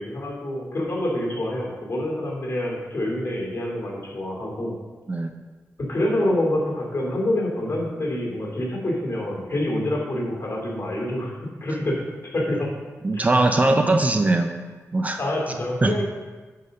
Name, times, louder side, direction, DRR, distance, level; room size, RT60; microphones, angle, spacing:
voice 1, 0.0-4.8 5.8-11.3 11.6-12.0 12.3-12.7 13.1-13.3 15.2-16.0, left 1 dB, 45° left, -3 dB, 2.7 m, -26 dB
voice 2, 13.0-14.5 14.9-15.2 15.8-15.9, right 2 dB, 25° right, 5 dB, 0.5 m, -20 dB
9.3 x 4.1 x 6.4 m, 1.3 s
wide cardioid pair, 125°, 5 cm